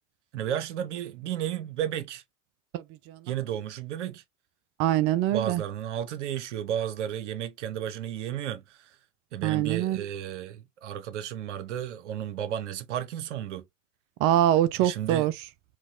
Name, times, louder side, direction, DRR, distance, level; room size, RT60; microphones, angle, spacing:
voice 1, 0.3-2.2 3.3-4.2 5.3-9.0 9.3-13.6 14.8-15.3, right 10 dB, 70° right, 0.7 m, -33 dB
voice 2, 4.8-5.6 9.4-10.0 14.2-15.3, right 12 dB, 40° right, 0.4 m, -24 dB
4.4 x 2.1 x 2.6 m
figure-of-eight pair, 75°, 37 cm